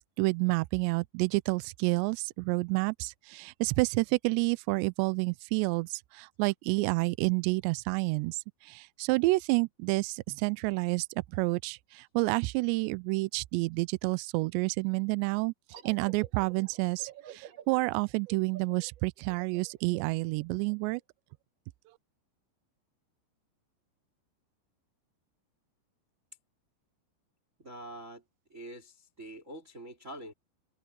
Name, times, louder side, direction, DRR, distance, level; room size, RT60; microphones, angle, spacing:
voice 1, 0.0-11.1 11.3-15.5 15.8-21.0, right 25 dB, 85° right, 2.6 m, -29 dB
sound 1, 15.7-21.0, right 10 dB, 60° right, 1.7 m, -51 dB
voice 2, 27.6-28.2 28.5-30.3, right 1 dB, 20° right, 2.9 m, -45 dB
omnidirectional pair, 5.3 m